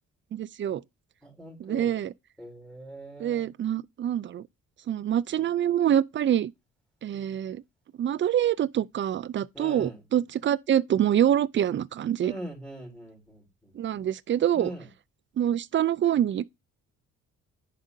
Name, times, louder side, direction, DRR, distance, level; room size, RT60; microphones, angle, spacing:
voice 1, 0.3-0.8 1.6-2.1 3.2-4.5 4.9-6.5 7.0-7.6 8.0-12.3 13.7-14.7 15.4-16.5, right 10 dB, 40° right, 0.4 m, -25 dB
voice 2, 1.2-2.0 2.4-3.5 9.5-10.0 12.2-14.0 14.5-14.9, right 1 dB, 5° left, 4.3 m, -42 dB
10.0 x 5.1 x 2.7 m
cardioid pair, 90°, 30 cm